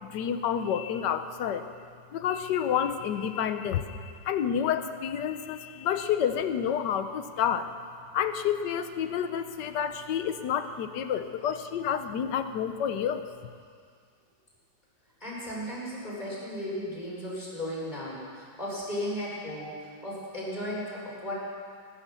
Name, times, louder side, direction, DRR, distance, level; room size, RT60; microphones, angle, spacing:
voice 1, 0.0-1.7 2.1-7.7 8.1-13.3, left 8 dB, 80° left, 9 dB, 1.4 m, -29 dB
voice 2, 15.2-21.3, equal, 25° left, -6 dB, 5.1 m, -35 dB
20.0 x 10.0 x 6.9 m, 2.1 s
omnidirectional pair, 1.9 m